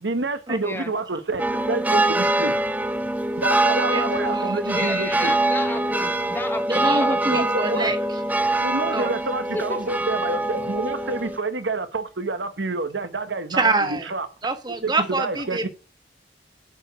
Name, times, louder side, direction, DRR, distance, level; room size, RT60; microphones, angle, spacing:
voice 1, 0.0-2.5 3.4-5.3 7.3-7.9 8.6-14.3 14.8-15.7, right 3 dB, 80° right, 1.2 m, -28 dB
voice 2, 0.6-0.9 4.7-7.4 9.5-9.8, left 2 dB, 10° left, 0.9 m, -33 dB
sound 1, 1.4-11.4, right 2 dB, 10° right, 0.6 m, -24 dB
voice 3, 3.9-5.0 6.7-8.0 8.9-9.1 13.5-14.1 14.4-15.7, right 3 dB, 25° right, 1.4 m, -25 dB
11.0 x 5.0 x 7.8 m
head